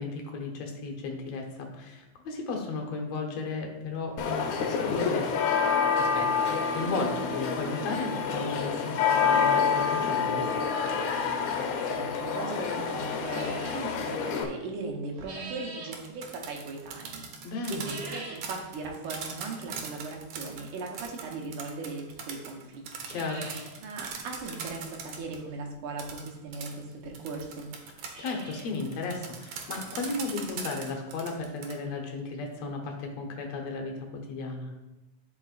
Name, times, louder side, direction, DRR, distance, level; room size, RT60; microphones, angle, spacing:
voice 1, 0.0-5.5 6.0-10.4 17.4-17.9 23.1-23.5 28.2-34.7, left 3 dB, 65° left, 2 dB, 2.2 m, -35 dB
sound 1, 4.2-14.4, left 6 dB, 80° left, 2.2 m, -27 dB
voice 2, 11.7-17.3 17.7-22.9 23.1-23.2 23.8-27.7, right 3 dB, 85° right, 1 dB, 2.6 m, -38 dB
sound 2, 13.3-13.9 14.8-16.0 17.7-18.5 18.9-19.0 19.8-19.9 21.6-21.7 22.2-22.3 22.5-22.6 22.9-23.7 24.1-24.2 24.4-24.5 26.0-26.1 26.9-27.0 27.2-27.3 27.8-28.8 29.1-29.2 29.7-29.8 30.2-30.3 32.1-32.2 32.3-32.4 32.9-33.0, right 3 dB, 45° right, 1.4 m, -44 dB
sound 3, 15.8-25.4 26.0-31.7, right 6 dB, 65° right, 1.6 m, -40 dB
11.0 x 5.7 x 2.5 m, 1.0 s
omnidirectional pair, 3.5 m